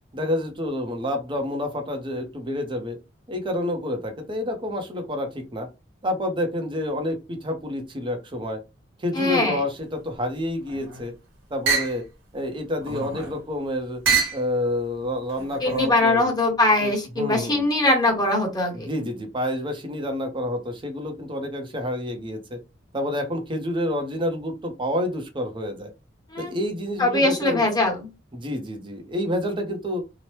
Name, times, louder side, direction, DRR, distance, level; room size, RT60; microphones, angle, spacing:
voice 1, 0.1-3.0 3.3-5.7 6.0-8.6 9.0-11.1 11.5-12.0 12.3-14.0 14.3-16.3 16.8-17.6 18.7-22.6 22.9-25.9 26.4-27.6 28.3-30.0, left 1 dB, 25° right, 5 dB, 0.7 m, -28 dB
voice 2, 9.1-9.6 15.6-18.9 26.3-26.5 27.0-28.1, left 2 dB, 20° left, 0 dB, 1.0 m, -21 dB
sound 1, 10.5-11.1 11.7-12.0 12.8-13.4 14.0-14.5 15.3-15.9, right 5 dB, 80° right, 1.1 m, -26 dB
2.9 x 2.1 x 3.1 m, 0.27 s
head